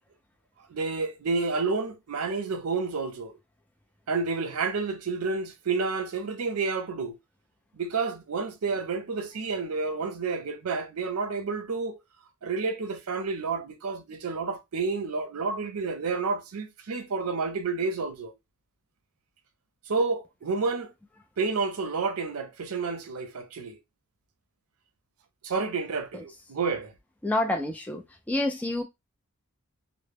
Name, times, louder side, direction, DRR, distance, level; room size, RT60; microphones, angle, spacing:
voice 1, 0.7-3.3 4.1-7.2 7.8-12.0 12.4-18.3 19.9-20.9 21.4-23.8 25.4-26.9, right 4 dB, 75° right, 0.5 m, -30 dB
voice 2, 27.2-28.8, left 1 dB, 5° left, 0.3 m, -28 dB
2.1 x 2.1 x 3.3 m
head